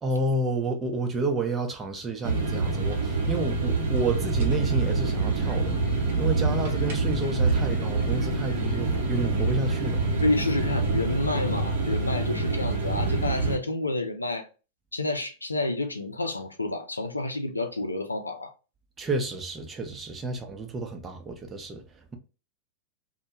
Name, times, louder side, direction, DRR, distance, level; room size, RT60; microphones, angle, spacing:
voice 1, 0.0-5.7 6.2-10.2 19.0-21.8, right 2 dB, 20° right, 0.6 m, -30 dB
sound 1, 2.2-13.6, right 3 dB, 65° right, 0.7 m, -26 dB
sound 2, 4.4-11.0, equal, 40° left, 0.8 m, -38 dB
voice 2, 10.2-14.5 14.9-18.5 20.2-20.4, left 2 dB, 90° left, 0.4 m, -29 dB
2.1 x 2.1 x 2.8 m
figure-of-eight pair, 95°, 0 cm